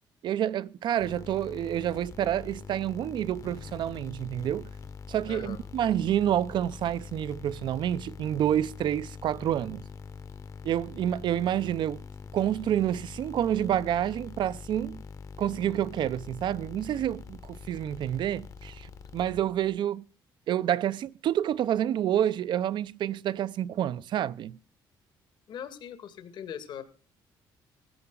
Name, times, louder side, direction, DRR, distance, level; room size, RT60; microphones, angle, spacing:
voice 1, 0.2-4.7 5.1-9.8 10.6-12.0 12.3-15.0 15.4-20.0 20.5-24.6, right 11 dB, 65° right, 0.7 m, -28 dB
sound 1, 1.0-19.8, left 5 dB, 40° left, 1.1 m, -44 dB
voice 2, 5.3-5.6 25.5-26.8, left 8 dB, 65° left, 2.1 m, -40 dB
16.5 x 14.0 x 3.9 m
cardioid pair, 105°, 9 cm